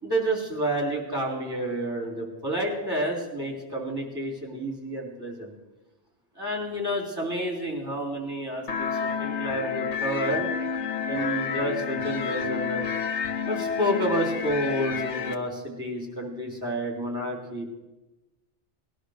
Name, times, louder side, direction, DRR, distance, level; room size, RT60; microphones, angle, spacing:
voice 1, 0.0-5.5 6.4-8.9 9.2-10.5 11.1-12.9 13.5-17.7, right 1 dB, 20° right, 0 dB, 3.5 m, -29 dB
sound 1, 8.7-15.3, left 6 dB, 85° left, 1.2 m, -29 dB
18.5 x 11.5 x 6.5 m, 1.1 s
omnidirectional pair, 1.2 m